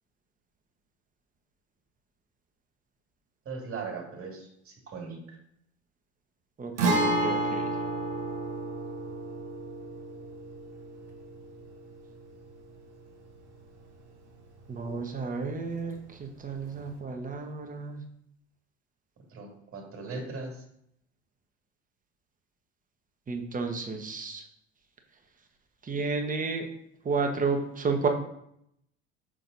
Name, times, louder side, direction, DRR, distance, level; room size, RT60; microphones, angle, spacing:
voice 1, 3.5-5.4 19.3-20.6, right 4 dB, 40° right, 1 dB, 2.3 m, -39 dB
voice 2, 6.6-7.7 14.7-18.1 23.3-24.4 25.8-26.7 27.0-28.1, right 4 dB, 25° right, 4 dB, 1.2 m, -32 dB
Guitar, 6.8-14.4 14.7-14.8 16.8-16.9, right 2 dB, 85° right, 1.1 m, -32 dB
6.4 x 4.1 x 4.0 m, 0.73 s
hypercardioid pair, 70°, 34 cm